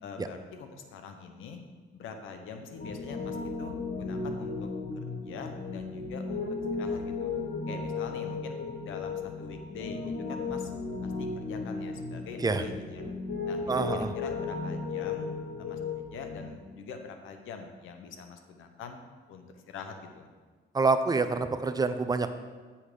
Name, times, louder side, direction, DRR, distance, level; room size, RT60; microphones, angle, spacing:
voice 1, 0.0-1.6 1.9-4.7 4.9-6.4 6.8-7.3 7.7-8.6 8.8-10.7 11.0-13.0 13.4-13.6 13.9-15.3 15.6-19.0 19.3-20.3, left 5 dB, 85° left, 6 dB, 1.0 m, -44 dB
Piano, 2.8-16.5, left 4 dB, 60° left, 1.5 m, -35 dB
voice 2, 13.7-14.1 20.7-22.3, right 4 dB, 20° right, 9 dB, 0.6 m, -27 dB
8.1 x 5.7 x 5.1 m, 1.4 s
cardioid pair, 90°, 20 cm